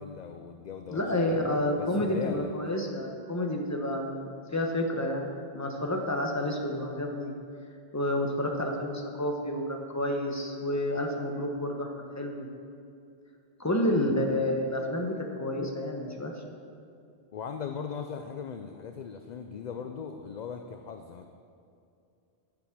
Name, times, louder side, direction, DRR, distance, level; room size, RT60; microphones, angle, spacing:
voice 1, 0.0-1.0 1.3-1.4 1.8-2.5 13.7-13.9 17.3-21.3, left 6 dB, 55° left, 6 dB, 0.6 m, -39 dB
voice 2, 0.9-5.3 5.5-7.3 7.9-12.5 13.6-16.3, left 1 dB, 15° left, 1 dB, 1.1 m, -30 dB
10.5 x 7.6 x 6.1 m, 2.5 s
omnidirectional pair, 1.1 m